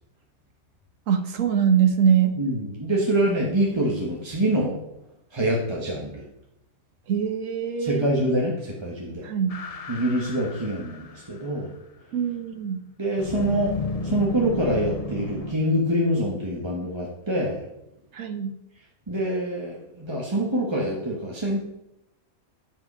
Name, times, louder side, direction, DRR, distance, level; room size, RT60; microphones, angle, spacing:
voice 1, 1.1-2.4 7.1-8.1 9.2-9.6 12.1-12.8 18.1-18.5, right 8 dB, 70° right, 7 dB, 1.4 m, -23 dB
voice 2, 2.3-4.8 5.3-6.2 7.8-9.3 9.9-11.7 13.0-13.7 14.0-17.7 19.1-21.7, right 1 dB, 20° right, -3 dB, 1.3 m, -25 dB
sound 1, 9.5-11.5 13.2-15.5, left 3 dB, 60° left, 0.3 m, -32 dB
11.5 x 5.2 x 6.0 m, 0.85 s
omnidirectional pair, 1.5 m